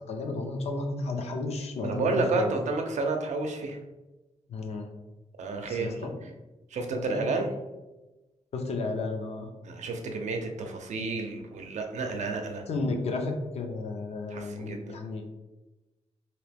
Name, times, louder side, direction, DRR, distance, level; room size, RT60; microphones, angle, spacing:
voice 1, 0.1-2.5 4.5-4.9 5.7-6.3 6.9-7.5 8.5-9.5 12.7-15.2, left 3 dB, 60° left, 4 dB, 0.5 m, -33 dB
voice 2, 1.8-3.8 5.4-6.1 6.7-7.5 9.6-12.6 14.3-15.0, right 3 dB, 80° right, 4 dB, 0.5 m, -30 dB
2.9 x 2.9 x 3.4 m, 1.1 s
wide cardioid pair, 165°, 12 cm